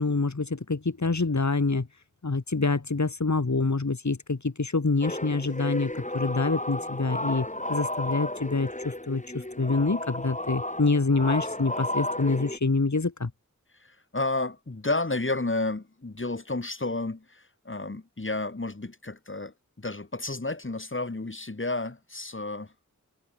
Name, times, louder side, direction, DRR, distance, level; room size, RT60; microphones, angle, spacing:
voice 1, 0.0-1.9 2.2-13.3, left 3 dB, 60° left, 2.7 m, -26 dB
sound 1, 5.0-12.6, left 1 dB, 25° left, 6.2 m, -33 dB
voice 2, 13.8-22.7, left 2 dB, 40° left, 2.1 m, -31 dB
wide cardioid pair, 50°, 32 cm